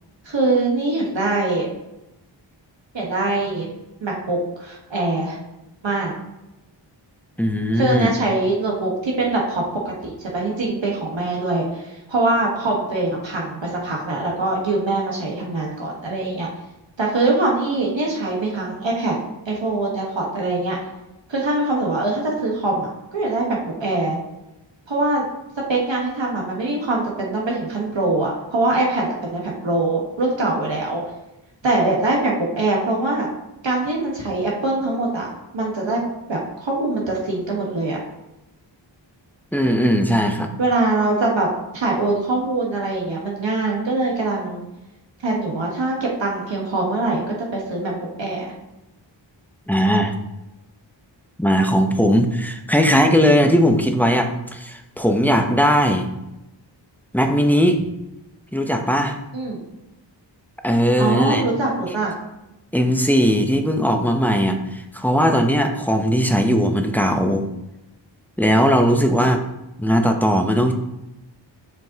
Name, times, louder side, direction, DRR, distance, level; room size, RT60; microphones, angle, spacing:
voice 1, 0.2-1.7 2.9-3.7 4.0-5.4 5.8-6.1 7.7-16.5 17.0-19.1 19.4-20.8 21.3-24.2 24.9-25.2 25.7-31.0 31.6-33.3 33.6-35.3 35.5-36.0 36.3-38.0 40.6-41.5 41.7-44.6 45.2-47.9 48.2-48.5 59.3-59.6 61.0-62.1 68.8-69.1, right 2 dB, 70° right, -2 dB, 1.4 m, -23 dB
voice 2, 7.4-8.1 39.5-40.5 49.7-50.2 51.4-56.1 57.1-57.8 58.5-59.2 60.6-61.4 62.7-67.5 68.4-69.4 69.8-70.7, equal, 5° left, 4 dB, 0.7 m, -18 dB
7.6 x 5.2 x 2.9 m, 0.95 s
wide cardioid pair, 70°, 46 cm